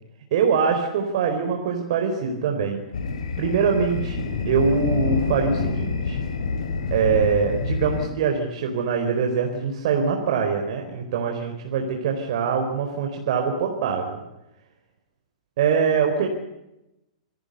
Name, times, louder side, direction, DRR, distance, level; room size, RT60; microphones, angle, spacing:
voice 1, 0.3-2.8 3.4-6.2 6.9-14.2 15.6-16.3, right 6 dB, 55° right, 3 dB, 4.4 m, -23 dB
sound 1, 2.9-8.1, left 4 dB, 70° left, 4.6 m, -27 dB
27.0 x 18.5 x 8.2 m, 0.91 s
hypercardioid pair, 110°, 4 cm